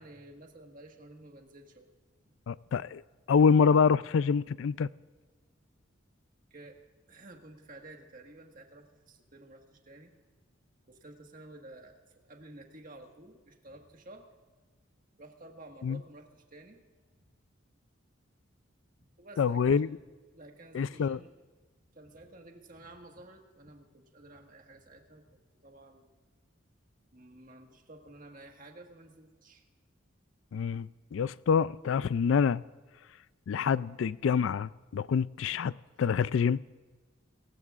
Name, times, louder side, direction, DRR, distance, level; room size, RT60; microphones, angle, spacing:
voice 1, 0.0-1.9 2.3-2.4 6.5-6.8 7.1-10.1 10.9-14.3 15.1-16.8 19.2-19.8 20.3-21.3 21.9-26.1 27.1-29.6, right 2 dB, 45° right, 1.6 m, -52 dB
voice 2, 2.5-3.0 3.3-4.9 15.8-16.0 19.4-19.9 20.7-21.2 30.5-32.6 33.5-36.6, left 6 dB, 75° left, 0.3 m, -26 dB
29.5 x 15.5 x 2.5 m
head